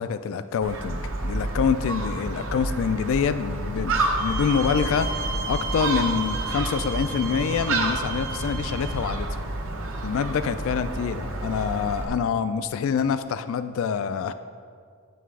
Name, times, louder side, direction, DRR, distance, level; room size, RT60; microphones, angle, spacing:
voice 1, 0.0-5.1 5.5-9.4 10.0-14.3, left 6 dB, 65° left, 12 dB, 0.3 m, -26 dB
Gull seagull, 0.6-12.1, right 2 dB, 65° right, 0.8 m, -29 dB
sound 1, 4.2-9.1, right 5 dB, 40° right, 1.0 m, -35 dB
9.3 x 3.3 x 6.1 m, 2.1 s
head